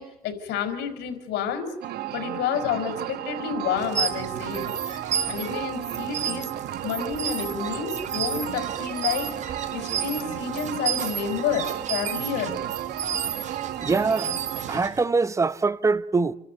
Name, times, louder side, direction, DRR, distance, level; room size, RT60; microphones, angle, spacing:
voice 1, 0.0-1.7 2.1-4.7 5.3-6.5 6.8-9.3 9.7-12.5, left 7 dB, 85° left, 4.9 m, -29 dB
sound 1, 1.8-14.8, right 12 dB, 70° right, 1.4 m, -33 dB
sound 2, 3.8-15.0, right 7 dB, 45° right, 3.1 m, -32 dB
voice 2, 13.8-14.3 14.7-16.4, right 4 dB, 15° right, 0.9 m, -23 dB
29.0 x 13.0 x 9.4 m
cardioid pair, 110°, 17 cm